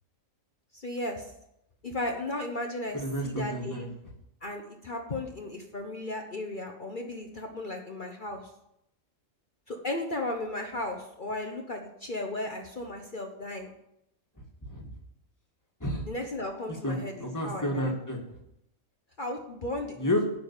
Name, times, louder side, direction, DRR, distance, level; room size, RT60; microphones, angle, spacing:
voice 1, 0.7-1.3 1.8-3.0 3.2-3.9 4.4-8.4 9.7-13.7 16.1-17.9 19.2-20.1, left 2 dB, 40° left, 3 dB, 1.2 m, -35 dB
voice 2, 2.9-3.9 14.4-14.9 15.8-16.1 16.8-18.4 20.0-20.2, equal, 15° left, 1 dB, 2.0 m, -31 dB
9.9 x 6.0 x 8.6 m, 0.81 s
omnidirectional pair, 1.4 m